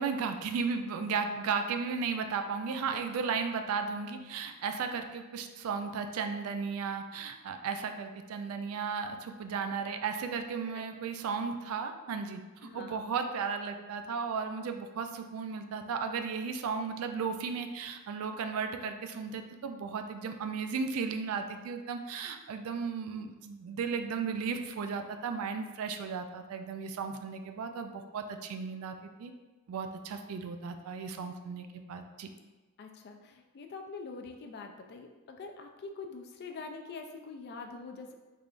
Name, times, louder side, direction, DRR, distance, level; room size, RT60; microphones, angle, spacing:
voice 1, 0.0-29.3 29.7-32.3, right 5 dB, 70° right, 7 dB, 0.3 m, -35 dB
voice 2, 12.6-13.0 32.8-38.2, left 4 dB, 45° left, 4 dB, 0.3 m, -44 dB
3.6 x 3.2 x 2.4 m, 1.2 s
head